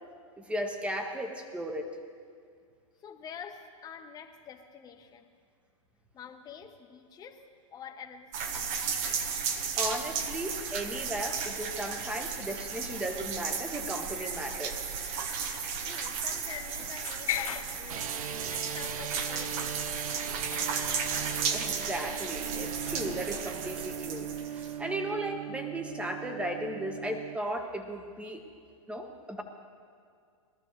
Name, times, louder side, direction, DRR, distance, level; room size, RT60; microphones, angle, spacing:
voice 1, 0.4-2.0 9.8-14.8 21.5-28.4 28.9-29.4, right 1 dB, 5° right, 4 dB, 1.2 m, -36 dB
voice 2, 3.0-5.3 6.1-8.8 15.8-18.1 18.5-20.5, left 7 dB, 20° left, 4 dB, 1.1 m, -47 dB
sound 1, 8.3-24.8, right 6 dB, 40° right, 1.2 m, -34 dB
sound 2, 14.2-14.5 16.2-18.3 18.9-19.0 20.2-20.3 20.5-20.9 21.6-21.8, left 11 dB, 80° left, 0.7 m, -38 dB
sound 3, 17.9-27.4, right 9 dB, 80° right, 0.6 m, -39 dB
21.0 x 13.0 x 3.2 m, 2.2 s
hypercardioid pair, 130°, 18 cm